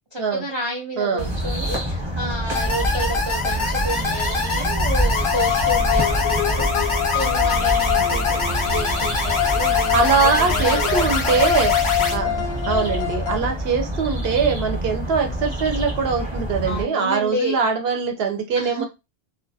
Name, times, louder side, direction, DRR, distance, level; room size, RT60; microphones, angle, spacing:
voice 1, 0.1-11.2 12.2-12.5 16.6-17.5 18.5-18.8, right 1 dB, 45° right, -1 dB, 0.3 m, -30 dB
voice 2, 1.0-1.3 9.9-11.7 12.1-12.4 12.7-18.8, right 5 dB, 75° right, 4 dB, 0.8 m, -22 dB
sound 1, 1.2-16.8, right 1 dB, 30° right, 0.9 m, -26 dB
sound 2, 2.5-12.1, left 3 dB, 40° left, 0.5 m, -26 dB
sound 3, 5.1-13.4, left 12 dB, 85° left, 0.8 m, -24 dB
2.2 x 2.1 x 2.6 m, 0.24 s
omnidirectional pair, 1.1 m